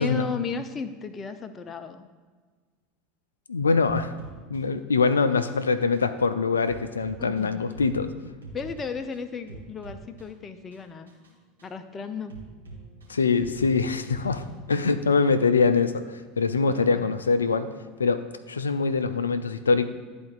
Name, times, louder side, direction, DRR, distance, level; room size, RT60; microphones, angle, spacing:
voice 1, 0.0-2.1 5.3-5.4 7.2-7.5 8.5-11.1 11.6-12.4 16.7-17.1, left 5 dB, 25° left, 9 dB, 0.6 m, -34 dB
voice 2, 3.5-4.1 4.5-8.1 13.1-17.7 18.0-19.9, left 4 dB, 80° left, 10 dB, 0.3 m, -24 dB
sound 1, 3.8-15.0, right 3 dB, 80° right, 1.9 m, -46 dB
11.5 x 4.3 x 2.4 m, 1.5 s
figure-of-eight pair, 80°, 0 cm